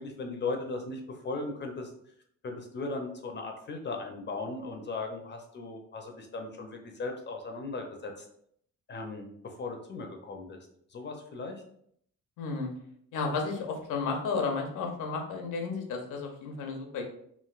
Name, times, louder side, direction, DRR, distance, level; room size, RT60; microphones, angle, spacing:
voice 1, 0.0-1.9 2.4-8.3 8.9-10.6 10.9-11.6, left 3 dB, 35° left, 3 dB, 0.5 m, -37 dB
voice 2, 12.4-12.7 13.1-17.0, left 4 dB, 80° left, 2 dB, 0.7 m, -32 dB
3.0 x 2.6 x 2.4 m, 0.68 s
cardioid pair, 90°, 30 cm